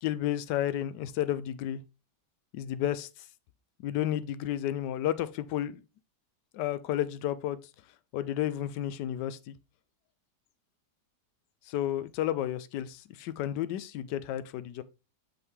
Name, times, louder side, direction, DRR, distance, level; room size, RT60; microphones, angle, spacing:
voice 1, 0.0-1.8 2.5-3.3 3.8-5.8 6.5-7.6 8.1-9.5 11.7-14.8, left 12 dB, 85° left, 1.2 m, -32 dB
6.1 x 5.6 x 3.5 m
omnidirectional pair, 1.8 m